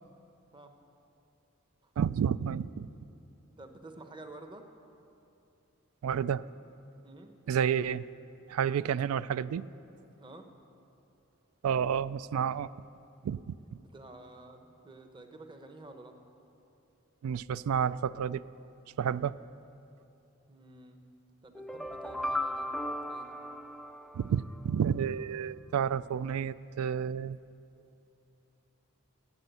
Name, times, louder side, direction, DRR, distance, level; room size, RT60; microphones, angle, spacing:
voice 1, 2.0-2.9 6.0-6.4 7.5-8.0 8.5-9.7 11.6-12.7 13.2-13.6 17.2-18.4 19.0-19.4 24.1-27.4, right 8 dB, 85° right, 18 dB, 0.3 m, -30 dB
voice 2, 3.6-4.7 7.0-7.3 10.2-10.5 13.7-16.2 20.5-21.0 21.4-22.8 23.1-23.4, right 2 dB, 25° right, 6 dB, 0.8 m, -50 dB
sound 1, 21.5-24.6, left 1 dB, ahead, 0.3 m, -36 dB
12.0 x 8.6 x 8.1 m, 2.8 s
head